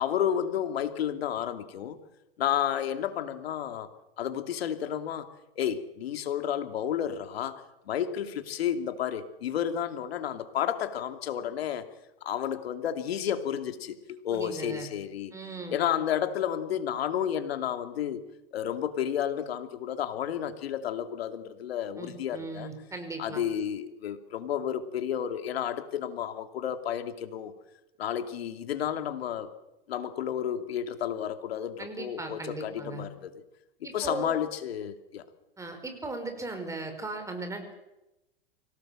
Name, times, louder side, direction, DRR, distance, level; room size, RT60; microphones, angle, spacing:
voice 1, 0.0-2.0 2.4-3.9 4.2-5.3 5.6-11.9 12.2-15.3 15.7-18.2 18.5-22.7 23.2-27.5 28.0-29.5 29.9-33.3 33.9-35.2, left 9 dB, 80° left, 8 dB, 2.6 m, -31 dB
voice 2, 14.3-14.9 15.3-15.8 22.0-23.4 31.8-33.1 33.8-34.4 35.6-37.8, right 2 dB, 10° right, 6 dB, 4.9 m, -38 dB
25.0 x 18.0 x 7.6 m, 0.94 s
hypercardioid pair, 125°, 30 cm